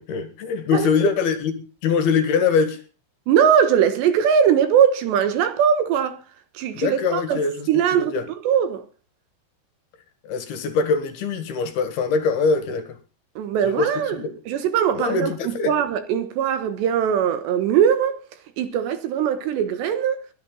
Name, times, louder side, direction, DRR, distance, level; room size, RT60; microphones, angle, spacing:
voice 1, 0.0-2.8 6.8-8.3 10.2-13.0 13.6-14.3 15.0-15.7, left 5 dB, 60° left, 3.4 m, -23 dB
voice 2, 3.3-6.2 6.6-7.4 7.7-8.2 8.4-8.8 13.4-18.2 18.6-20.2, right 8 dB, 70° right, 3.2 m, -20 dB
23.0 x 10.5 x 3.9 m
omnidirectional pair, 5.4 m